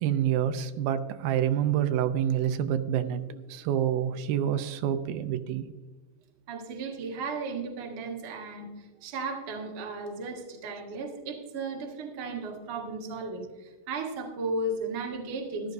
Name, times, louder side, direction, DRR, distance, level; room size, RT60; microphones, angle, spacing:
voice 1, 0.0-5.7, right 10 dB, 90° right, 9 dB, 2.6 m, -27 dB
voice 2, 6.5-15.7, right 3 dB, 45° right, 0 dB, 2.0 m, -35 dB
14.0 x 12.0 x 2.6 m, 1.2 s
omnidirectional pair, 4.2 m